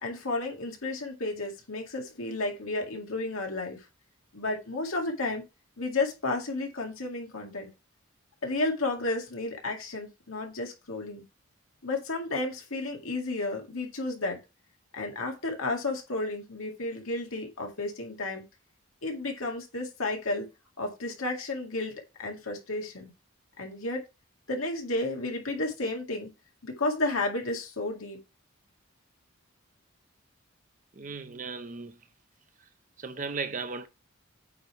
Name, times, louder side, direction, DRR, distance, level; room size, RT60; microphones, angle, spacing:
voice 1, 0.0-3.8 4.3-5.4 5.8-7.7 8.4-11.2 11.8-14.4 14.9-18.4 19.0-20.5 20.8-23.1 23.6-24.0 24.5-26.3 26.6-28.2, left 2 dB, 85° left, 2.1 m, -32 dB
voice 2, 31.0-32.0 33.0-33.9, right 4 dB, 40° right, 0.7 m, -36 dB
8.5 x 3.5 x 4.6 m
head